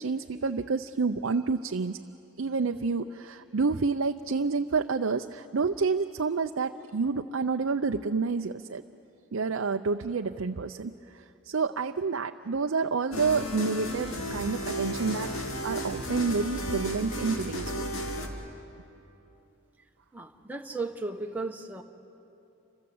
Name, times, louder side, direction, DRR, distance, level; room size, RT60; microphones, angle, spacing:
voice 1, 0.0-2.0 2.4-8.8 9.3-15.3 15.6-17.8, right 4 dB, 75° right, 5 dB, 0.6 m, -29 dB
sound 1, 13.1-18.3, equal, 80° left, 2.7 m, -34 dB
voice 2, 20.1-21.8, right 3 dB, 10° right, 2 dB, 1.3 m, -35 dB
29.0 x 26.5 x 7.9 m, 2.9 s
head